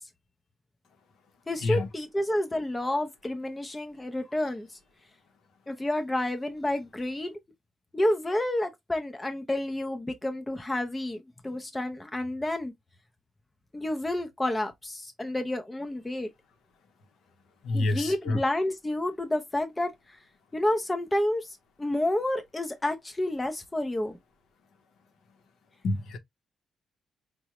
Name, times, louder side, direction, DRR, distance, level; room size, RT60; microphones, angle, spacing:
voice 1, 1.5-4.8 5.7-7.3 7.9-12.7 13.7-16.3 17.7-20.2 20.5-24.2, left 1 dB, 10° left, 0.4 m, -30 dB
voice 2, 17.6-18.4 25.8-26.2, left 2 dB, 65° left, 0.7 m, -27 dB
4.7 x 2.0 x 2.8 m
cardioid pair, 165°, 0 cm